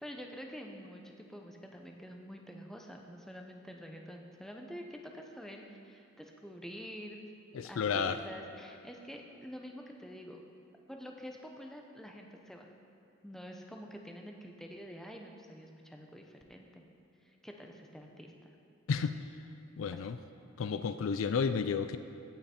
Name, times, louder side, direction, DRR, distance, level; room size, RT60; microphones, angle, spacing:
voice 1, 0.0-7.2 7.6-10.4 10.9-12.7 13.2-16.8 17.2-18.5 19.9-20.0, equal, ahead, 2 dB, 0.7 m, -47 dB
voice 2, 7.5-8.2 18.9-19.2 19.8-20.2 20.6-22.0, left 6 dB, 65° left, 10 dB, 0.4 m, -31 dB
16.5 x 5.7 x 4.3 m, 2.8 s
head